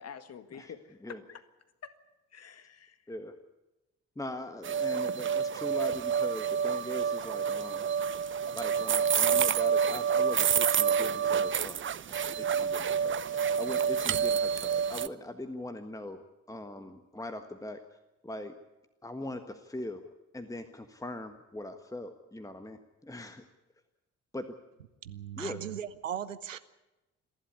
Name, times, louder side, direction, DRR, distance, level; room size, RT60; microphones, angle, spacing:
voice 1, 0.0-1.4 1.8-1.9 2.3-3.0, left 7 dB, 40° left, 12 dB, 1.8 m, -47 dB
voice 2, 4.1-7.9 8.5-11.8 12.1-16.2 16.5-18.0 18.2-18.5 19.0-20.0 20.3-23.4 24.3-24.4 25.4-25.6, left 1 dB, 10° left, 8 dB, 1.5 m, -41 dB
sound 1, 4.6-15.1, right 7 dB, 30° right, 0.8 m, -28 dB
voice 3, 25.0-26.6, right 9 dB, 85° right, 15 dB, 0.7 m, -38 dB
27.5 x 11.5 x 9.7 m, 1.0 s
figure-of-eight pair, 40°, 37 cm